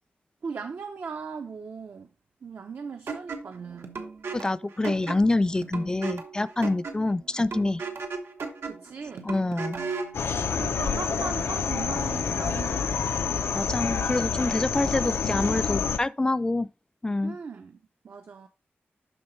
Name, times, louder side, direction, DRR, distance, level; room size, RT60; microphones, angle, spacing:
voice 1, 0.4-2.1 2.4-4.1 8.7-9.3 10.6-13.2 17.2-18.5, right 5 dB, 65° right, 0.6 m, -38 dB
sound 1, 3.1-10.2, right 4 dB, 90° right, 1.2 m, -36 dB
voice 2, 4.3-7.8 9.2-9.8 13.5-16.7 17.0-17.4, left 2 dB, 20° left, 0.4 m, -26 dB
sound 2, 10.1-16.0, left 6 dB, 90° left, 0.6 m, -28 dB
11.5 x 3.9 x 3.1 m
wide cardioid pair, 110°, 4 cm